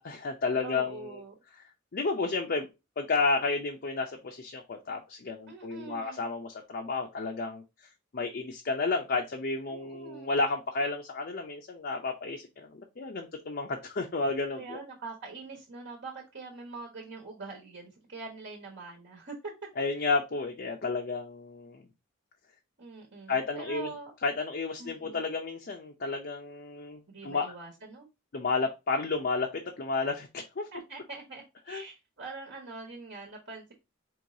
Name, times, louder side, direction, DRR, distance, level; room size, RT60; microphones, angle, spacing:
voice 1, 0.0-1.2 1.9-2.7 3.0-7.6 8.1-14.8 19.8-21.9 23.3-23.9 24.2-27.5 28.3-30.7 31.7-31.8, left 3 dB, 50° left, 0.5 m, -31 dB
voice 2, 0.6-1.4 5.5-6.3 9.7-10.3 14.6-19.4 22.8-24.1 24.8-25.2 27.1-28.1 30.7-33.7, right 3 dB, 60° right, 1.2 m, -44 dB
4.7 x 3.1 x 2.6 m
head